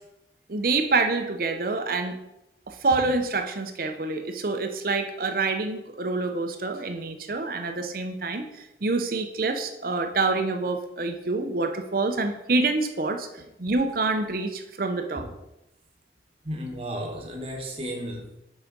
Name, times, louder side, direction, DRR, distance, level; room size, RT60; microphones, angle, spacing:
voice 1, 0.5-2.2 2.7-15.3, right 3 dB, 55° right, 6 dB, 0.7 m, -27 dB
voice 2, 16.4-18.4, equal, 35° right, 0 dB, 1.2 m, -34 dB
5.9 x 5.1 x 5.2 m, 0.91 s
head